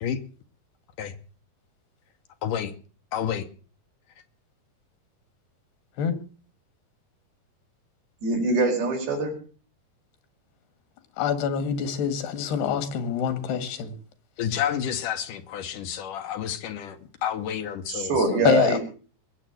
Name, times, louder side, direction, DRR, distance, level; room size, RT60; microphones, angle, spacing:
voice 1, 2.4-2.7 3.1-3.5 14.4-18.6, left 9 dB, 65° left, 2.3 m, -30 dB
voice 2, 8.2-9.3 17.9-18.8, right 3 dB, 70° right, 6.5 m, -23 dB
voice 3, 11.2-13.9 18.5-18.8, left 8 dB, 90° left, 3.8 m, -25 dB
21.5 x 7.4 x 7.6 m
omnidirectional pair, 4.5 m